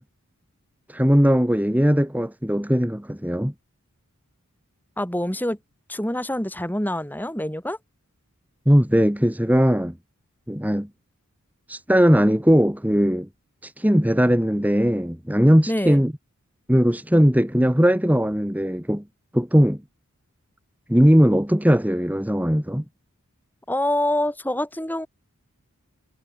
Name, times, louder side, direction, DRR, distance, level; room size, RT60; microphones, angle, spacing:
voice 1, 0.9-3.5 8.7-10.0 10.5-10.9 11.7-13.3 13.6-16.1 16.7-19.0 19.3-19.8 20.9-22.8, equal, 5° right, 1.9 m, -19 dB
voice 2, 5.0-5.6 5.9-7.8 15.7-16.0 23.7-25.1, left 1 dB, 10° left, 6.1 m, -25 dB
head